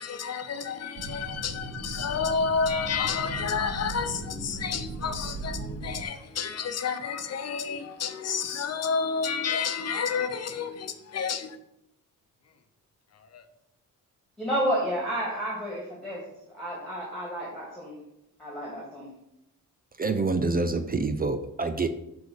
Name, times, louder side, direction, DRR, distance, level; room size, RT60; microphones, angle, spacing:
voice 1, 0.0-11.6 13.1-13.5, left 6 dB, 45° left, 0.9 m, -30 dB
sound 1, 1.0-6.0, right 2 dB, 55° right, 1.3 m, -38 dB
voice 2, 14.4-16.2 16.5-18.0 18.4-19.1, equal, ahead, 2.4 m, -31 dB
voice 3, 20.0-21.9, right 3 dB, 25° right, 0.5 m, -26 dB
7.8 x 4.8 x 7.2 m
wide cardioid pair, 160°, 35 cm